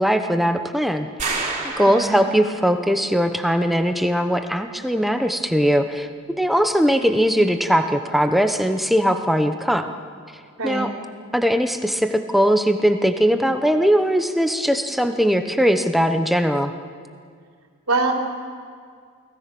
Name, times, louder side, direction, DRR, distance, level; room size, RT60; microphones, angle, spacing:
voice 1, 0.0-1.4 1.8-6.1 6.4-9.9 10.6-10.9 11.3-16.7, equal, ahead, 6 dB, 0.9 m, -20 dB
sound 1, 1.2-2.7, right 3 dB, 30° right, 3.5 m, -29 dB
voice 2, 1.8-2.2 10.6-10.9 17.9-18.1, right 3 dB, 85° right, 1 dB, 3.5 m, -23 dB
29.5 x 20.5 x 6.1 m, 2.1 s
head